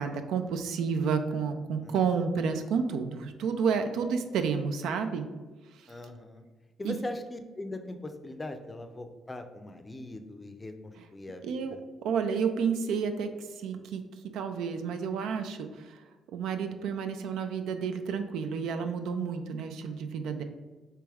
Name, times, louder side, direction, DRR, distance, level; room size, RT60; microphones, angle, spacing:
voice 1, 0.0-5.3 5.7-5.9 6.8-7.0 11.0-11.1 11.4-11.8 12.0-14.0 14.3-16.0 16.3-20.4, right 6 dB, 85° right, 7 dB, 0.4 m, -30 dB
voice 2, 5.9-6.4 6.8-10.7 11.1-11.4 11.7-11.8, left 2 dB, 20° left, 7 dB, 0.4 m, -40 dB
3.4 x 3.0 x 4.6 m, 1.3 s
cardioid pair, 90°, 0 cm